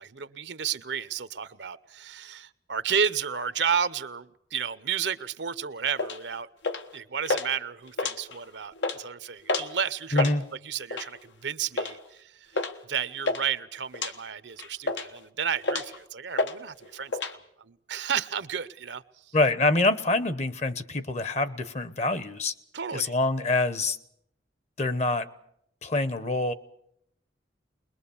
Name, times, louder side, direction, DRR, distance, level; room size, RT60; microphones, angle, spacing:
voice 1, 0.0-6.5 6.9-10.3 10.6-12.6 12.9-17.3 17.6-19.0 22.7-23.1, right 7 dB, 75° right, 0.8 m, -32 dB
sound 1, 6.0-6.2 6.6-6.9 7.3-7.5 7.9-8.5 8.8-9.0 9.5-9.7 10.0-10.4 10.9-11.2 11.8-12.0 12.6-12.7 13.0-13.4 13.9-14.1 14.6-15.2 15.6-16.0 16.4-16.6 16.8-17.3, left 3 dB, 80° left, 1.4 m, -29 dB
voice 2, 10.1-10.4 19.3-22.5 22.9-24.0 24.8-25.3 25.8-26.5, left 2 dB, 40° left, 1.0 m, -25 dB
21.5 x 21.5 x 7.1 m
head